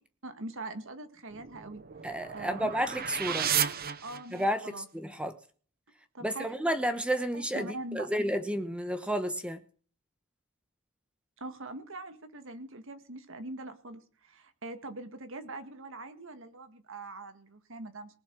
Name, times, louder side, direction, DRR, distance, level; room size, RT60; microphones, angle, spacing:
voice 1, 0.2-1.8 2.3-2.9 3.3-3.8 4.0-4.9 6.1-6.5 7.3-8.1 11.4-18.2, right 2 dB, 60° right, 9 dB, 1.8 m, -43 dB
sound 1, 1.3-4.7, right 8 dB, 45° right, 1.0 m, -33 dB
voice 2, 2.0-3.5 4.3-5.3 6.2-9.6, equal, 5° right, 9 dB, 1.0 m, -31 dB
19.5 x 7.2 x 6.2 m, 0.43 s
head